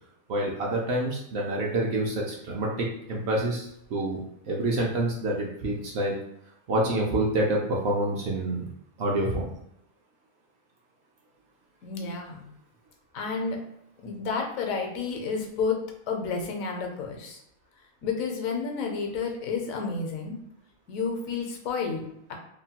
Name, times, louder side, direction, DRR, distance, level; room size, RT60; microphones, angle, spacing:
voice 1, 0.3-4.2 4.5-6.2 6.7-8.7 9.0-9.5, right 1 dB, 65° right, -3 dB, 0.7 m, -27 dB
voice 2, 11.8-12.5 13.1-13.6 14.0-15.8 16.1-17.4 18.0-20.4 20.9-22.3, left 5 dB, 80° left, 2 dB, 1.0 m, -31 dB
2.8 x 2.2 x 2.8 m, 0.78 s
omnidirectional pair, 1.4 m